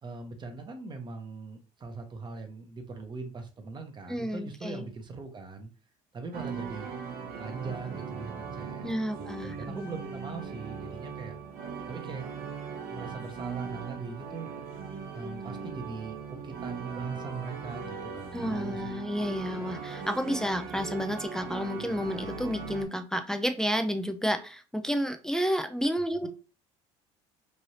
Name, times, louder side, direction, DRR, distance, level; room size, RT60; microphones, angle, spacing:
voice 1, 0.0-5.7 6.1-6.9 7.4-8.9 9.2-11.4 11.9-12.3 12.9-14.5 15.1-19.1 26.2-26.3, right 3 dB, 30° right, 6 dB, 0.8 m, -41 dB
voice 2, 4.1-4.9 8.8-9.9 18.3-26.3, equal, 5° left, 7 dB, 0.4 m, -31 dB
sound 1, 6.3-22.9, right 6 dB, 65° right, 0.9 m, -39 dB
3.2 x 2.6 x 2.7 m, 0.34 s
supercardioid pair, 90°, 16 cm